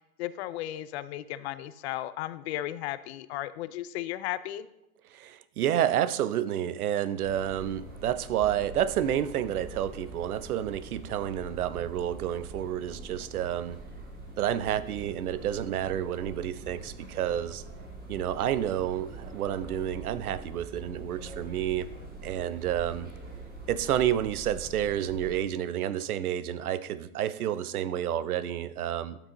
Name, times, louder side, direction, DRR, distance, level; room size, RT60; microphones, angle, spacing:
voice 1, 0.2-4.7, left 14 dB, 50° left, 0.6 m, -35 dB
voice 2, 5.1-13.8 14.4-17.6 18.1-21.9 22.2-23.1 23.7-29.2, right 11 dB, 75° right, 0.7 m, -30 dB
sound 1, 7.2-25.4, right 2 dB, 20° right, 2.7 m, -44 dB
12.5 x 6.2 x 3.9 m
hypercardioid pair, 120°, 44 cm